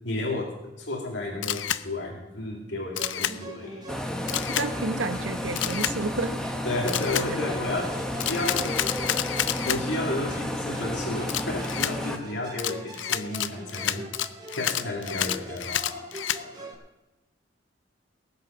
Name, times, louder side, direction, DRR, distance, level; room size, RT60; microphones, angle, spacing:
voice 1, 0.0-3.8 6.6-8.8 9.7-14.0 14.5-16.7, left 2 dB, 75° left, 0 dB, 2.4 m, -32 dB
Camera, 1.4-1.8 3.0-3.4 4.3-4.7 5.6-6.0 6.9-7.3 8.2-9.8 11.3-11.9 12.6-16.4, left 11 dB, 90° left, 0.5 m, -29 dB
Musical instrument, 2.9-16.7, right 1 dB, 25° right, 2.2 m, -43 dB
sound 1, 3.9-12.2, left 1 dB, 5° left, 1.2 m, -32 dB
voice 2, 4.6-6.4, right 3 dB, 90° right, 9 dB, 1.1 m, -30 dB
18.5 x 8.2 x 6.1 m, 0.97 s
head